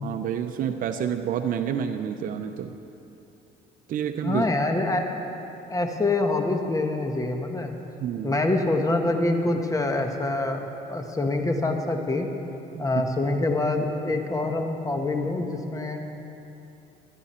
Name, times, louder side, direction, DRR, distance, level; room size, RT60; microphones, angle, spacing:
voice 1, 0.0-2.8 3.9-4.5 8.0-8.4 12.7-12.8, right 8 dB, 55° right, 6 dB, 0.7 m, -29 dB
voice 2, 4.2-5.0 5.7-7.7 8.2-12.3 12.8-16.0, left 2 dB, 20° left, 4 dB, 1.2 m, -25 dB
21.0 x 11.0 x 4.4 m, 2.9 s
cardioid pair, 110°, 17 cm